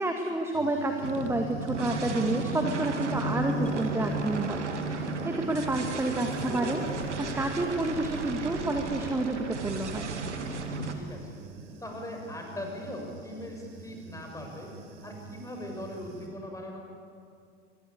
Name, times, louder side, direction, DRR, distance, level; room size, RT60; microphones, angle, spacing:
voice 1, 0.0-10.1, right 2 dB, 5° right, 4 dB, 2.0 m, -30 dB
Human voice / Buzz, 0.5-16.3, right 4 dB, 50° right, 5.1 m, -48 dB
sound 1, 1.0-10.9, right 2 dB, 85° right, 2.1 m, -33 dB
voice 2, 7.1-7.5 10.8-11.3 11.8-14.7 15.0-16.8, left 1 dB, 10° left, 1 dB, 6.8 m, -40 dB
25.0 x 21.5 x 8.6 m, 2.3 s
figure-of-eight pair, 85°, 34 cm